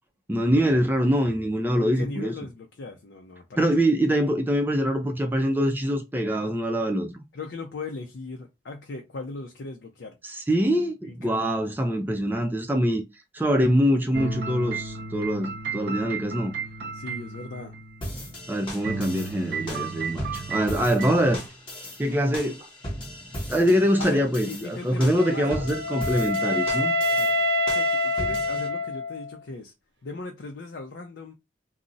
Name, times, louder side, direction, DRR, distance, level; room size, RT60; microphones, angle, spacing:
voice 1, 0.3-2.3 3.6-7.2 10.3-13.0 13.3-16.5 18.5-21.4 22.0-22.7 23.5-26.9, equal, 10° right, 0.4 m, -24 dB
voice 2, 1.7-3.7 7.3-10.2 11.0-11.6 15.8-16.2 16.9-17.7 24.0-25.7 27.1-29.7 30.0-31.3, left 3 dB, 70° left, 0.5 m, -38 dB
sound 1, 14.1-18.5 18.8-21.5, right 5 dB, 60° right, 0.5 m, -34 dB
sound 2, 18.0-28.7, equal, 25° left, 0.9 m, -38 dB
Wind instrument woodwind instrument, 25.1-29.3, left 2 dB, 75° right, 0.9 m, -26 dB
2.4 x 2.0 x 3.8 m
head